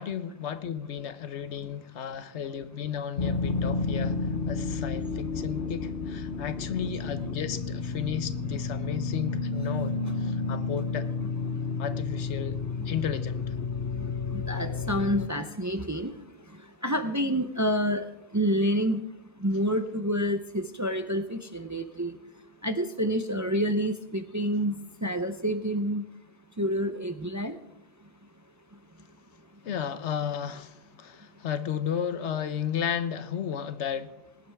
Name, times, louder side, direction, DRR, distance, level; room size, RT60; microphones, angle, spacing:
voice 1, 0.0-4.2 4.5-11.1 11.8-12.6 12.9-13.5 29.6-34.1, left 8 dB, 75° left, 12 dB, 1.1 m, -33 dB
sound 1, 3.2-15.3, left 4 dB, 55° left, 1.0 m, -31 dB
voice 2, 14.3-16.1 16.8-18.0 18.3-19.0 19.4-22.2 22.6-24.7 25.0-26.1 26.6-27.6, equal, 20° right, 8 dB, 0.5 m, -28 dB
19.5 x 10.5 x 3.5 m, 0.85 s
omnidirectional pair, 1.2 m